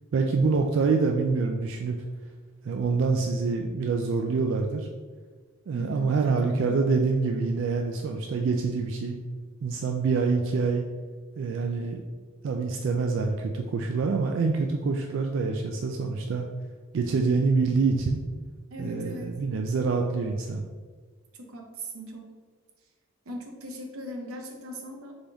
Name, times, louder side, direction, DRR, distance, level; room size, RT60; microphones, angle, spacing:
voice 1, 0.1-2.0 2.6-4.9 5.7-9.2 9.6-10.8 11.4-12.0 12.4-16.5 16.9-18.2 18.8-20.7, right 4 dB, 60° right, 3 dB, 0.3 m, -26 dB
voice 2, 5.7-6.7 18.7-19.3 21.4-22.3 23.3-25.1, equal, 90° right, 3 dB, 0.7 m, -39 dB
3.9 x 3.5 x 3.4 m, 1.5 s
head